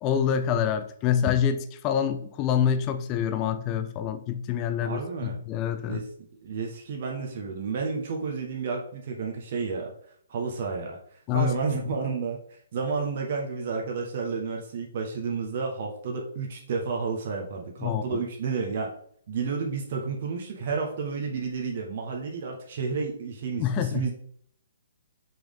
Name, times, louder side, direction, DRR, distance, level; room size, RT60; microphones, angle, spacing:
voice 1, 0.0-6.0 11.3-11.5 17.8-18.2 23.6-24.1, left 8 dB, 25° left, 9 dB, 0.6 m, -26 dB
voice 2, 4.8-5.4 5.9-6.1 6.4-9.9 10.3-11.0 11.3-12.4 12.7-18.9 19.3-24.1, right 5 dB, 50° right, 1 dB, 1.4 m, -31 dB
5.9 x 5.1 x 3.7 m, 0.62 s
figure-of-eight pair, 130°, 0 cm